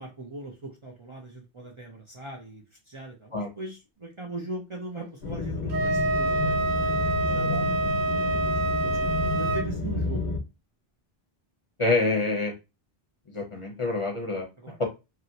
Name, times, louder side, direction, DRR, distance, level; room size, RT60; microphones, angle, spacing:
voice 1, 0.0-10.2 14.6-14.8, right 2 dB, 35° right, -1 dB, 0.6 m, -40 dB
sound 1, 5.2-10.4, left 2 dB, 80° left, 1.1 m, -30 dB
Wind instrument woodwind instrument, 5.7-9.7, right 2 dB, 65° right, 0.9 m, -26 dB
voice 2, 7.3-7.6 11.8-12.5 13.3-14.5, left 3 dB, 35° left, 1 dB, 0.8 m, -27 dB
2.9 x 2.9 x 2.7 m, 0.25 s
omnidirectional pair, 1.0 m